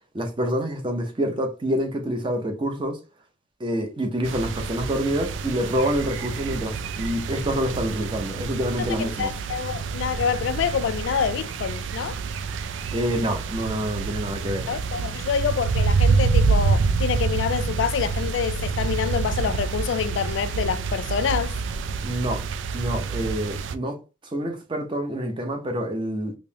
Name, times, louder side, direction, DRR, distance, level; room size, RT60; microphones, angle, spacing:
voice 1, 0.1-3.0 3.6-9.3 12.9-14.7 22.0-22.4 22.7-24.0 24.3-26.4, equal, 25° right, 0.6 m, -27 dB
sound 1, 4.2-23.8, right 5 dB, 75° right, 0.3 m, -27 dB
voice 2, 9.2-12.2 14.7-21.6, left 7 dB, 75° left, 0.3 m, -26 dB
5.2 x 2.0 x 2.7 m
head